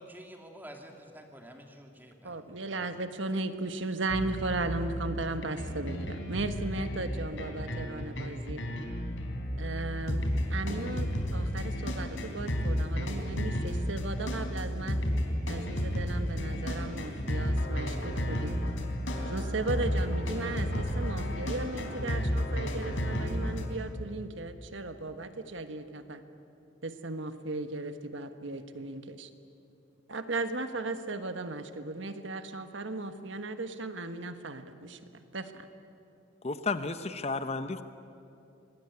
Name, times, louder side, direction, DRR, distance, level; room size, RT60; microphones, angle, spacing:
voice 1, 0.0-2.9, equal, 10° right, 3 dB, 2.6 m, -49 dB
voice 2, 2.2-8.6 9.6-15.0 15.5-18.6 19.3-26.2 26.8-29.3 30.1-35.7, right 2 dB, 75° right, 9 dB, 1.4 m, -36 dB
sound 1, 4.1-23.7, equal, 80° left, 3.9 m, -32 dB
voice 3, 36.4-37.8, left 3 dB, 35° left, 10 dB, 0.8 m, -32 dB
25.5 x 20.5 x 9.8 m, 2.7 s
head